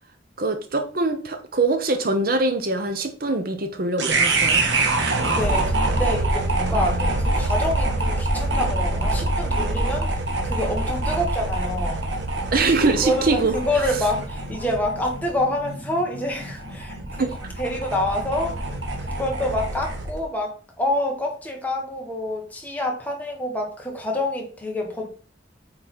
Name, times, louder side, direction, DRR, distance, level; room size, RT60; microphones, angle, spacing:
voice 1, 0.4-4.6 6.7-7.2 12.5-13.6 17.2-17.3, right 3 dB, 55° right, 0.9 m, -23 dB
sound 1, 4.0-20.2, right 2 dB, 80° right, 1.5 m, -25 dB
voice 2, 5.3-10.1 10.4-12.0 13.0-17.3 17.6-18.8 19.0-25.1, left 1 dB, 10° left, 1.7 m, -27 dB
8.6 x 3.9 x 4.5 m
head